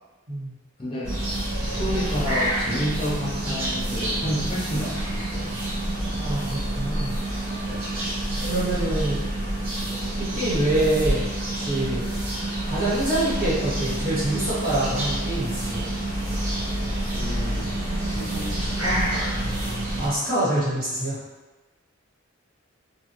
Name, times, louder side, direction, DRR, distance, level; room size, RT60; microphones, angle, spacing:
voice 1, 0.8-1.1 1.6-5.5 7.7-7.9 17.1-19.4, equal, 25° left, -6 dB, 0.5 m, -31 dB
sound 1, 1.0-20.1, right 1 dB, 85° right, 0.9 m, -28 dB
voice 2, 6.2-7.1 8.5-9.2 10.2-11.2 11.5-12.0 12.6-15.8 20.0-21.2, right 1 dB, 45° right, -10 dB, 1.3 m, -25 dB
2.7 x 2.5 x 3.0 m, 1.2 s
head